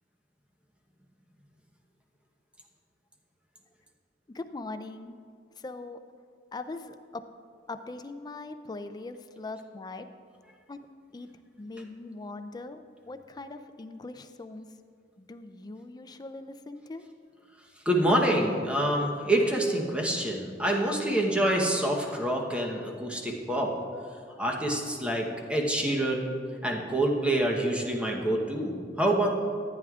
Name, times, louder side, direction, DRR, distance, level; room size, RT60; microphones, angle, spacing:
voice 1, 4.3-5.2 5.6-6.0 6.5-7.2 7.7-10.1 10.7-10.9 11.1-11.3 11.6-14.7 15.2-17.1, left 2 dB, 25° left, 9 dB, 0.4 m, -41 dB
voice 2, 17.8-23.7 24.4-26.3 26.6-29.3, right 1 dB, 5° right, -1 dB, 0.9 m, -26 dB
14.0 x 9.2 x 2.4 m, 2.2 s
head